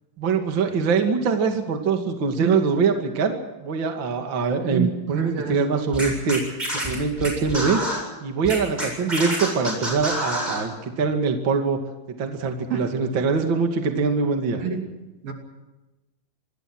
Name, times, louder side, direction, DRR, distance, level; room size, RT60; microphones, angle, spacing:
voice 1, 0.2-7.8 8.2-11.8 12.2-14.6, right 5 dB, 35° right, 4 dB, 2.5 m, -23 dB
voice 2, 4.7-5.6 12.7-12.9 14.5-14.8 15.2-15.3, right 7 dB, 65° right, 3 dB, 4.5 m, -26 dB
Scratching (performance technique), 5.9-8.0 8.4-10.6, equal, 10° right, 7.9 m, -27 dB
27.0 x 20.5 x 6.2 m, 1.1 s
omnidirectional pair, 4.5 m